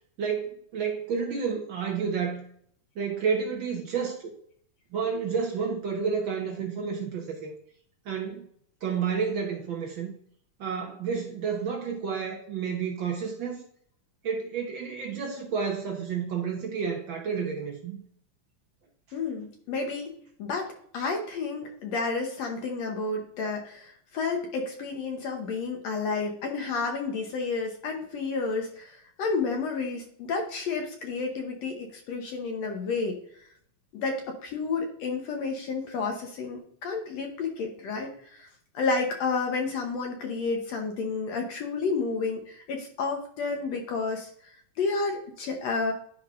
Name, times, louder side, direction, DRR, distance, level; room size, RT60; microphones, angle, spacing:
voice 1, 0.2-2.4 3.0-4.3 4.9-7.5 8.0-8.5 8.8-10.1 10.6-13.6 14.2-18.0, right 6 dB, 85° right, 1 dB, 1.0 m, -30 dB
voice 2, 19.1-20.1 20.4-33.2 33.9-38.5 38.7-45.9, left 4 dB, 70° left, 2 dB, 1.9 m, -31 dB
10.5 x 5.3 x 2.5 m, 0.62 s
omnidirectional pair, 3.6 m